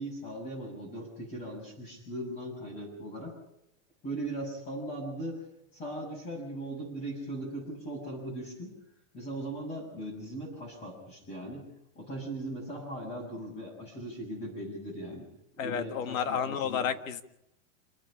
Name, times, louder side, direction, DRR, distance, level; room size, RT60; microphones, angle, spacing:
voice 1, 0.0-3.4 4.0-5.5 5.7-8.7 9.1-11.7 11.9-15.3 15.6-16.8, right 1 dB, 25° left, -5 dB, 6.6 m, -39 dB
voice 2, 15.6-17.2, left 7 dB, 80° left, 11 dB, 2.0 m, -31 dB
28.0 x 9.4 x 9.9 m, 0.82 s
supercardioid pair, 165°, 40 cm